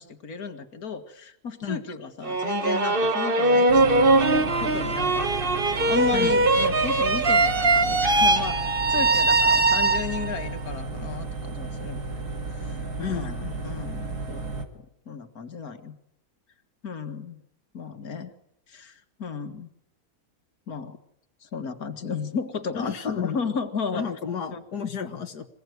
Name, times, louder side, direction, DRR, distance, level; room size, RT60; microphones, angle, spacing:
voice 1, 0.0-5.3 5.9-8.6 8.9-12.0 12.5-14.6 15.1-16.0 16.8-17.4 17.7-18.3 18.7-19.7 20.7-21.0 21.4-24.0 24.5-24.6, left 5 dB, 70° left, 7 dB, 2.4 m, -34 dB
sound 1, 2.2-10.4, right 2 dB, 40° right, 1.5 m, -21 dB
sound 2, 3.7-14.7, right 2 dB, 80° right, 3.3 m, -34 dB
voice 2, 13.0-13.5 22.7-23.4 23.9-25.5, left 7 dB, 90° left, 6 dB, 2.1 m, -31 dB
26.0 x 17.5 x 9.5 m, 0.80 s
omnidirectional pair, 1.7 m